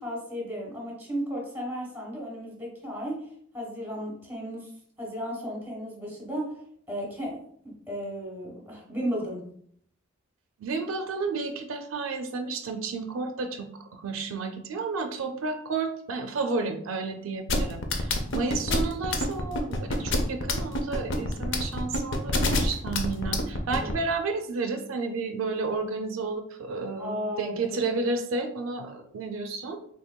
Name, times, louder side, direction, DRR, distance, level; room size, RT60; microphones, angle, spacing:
voice 1, 0.0-3.3 3.5-6.6 6.9-9.5 23.6-23.9 27.0-28.0, equal, 10° right, -2 dB, 1.2 m, -35 dB
voice 2, 10.6-29.8, right 4 dB, 85° right, 6 dB, 0.4 m, -31 dB
sound 1, 17.5-23.9, left 2 dB, 65° left, 0.5 m, -26 dB
3.6 x 3.3 x 2.2 m, 0.64 s
head